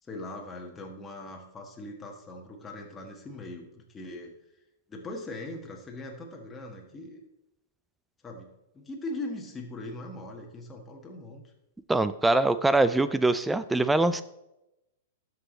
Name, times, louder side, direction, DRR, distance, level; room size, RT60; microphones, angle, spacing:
voice 1, 0.0-4.3 4.9-7.2 8.2-8.5 8.7-11.5, left 2 dB, 15° left, 0 dB, 1.4 m, -40 dB
voice 2, 11.9-14.2, right 2 dB, 5° right, 14 dB, 0.3 m, -23 dB
12.5 x 4.8 x 3.9 m, 0.90 s
hypercardioid pair, 115°, 0 cm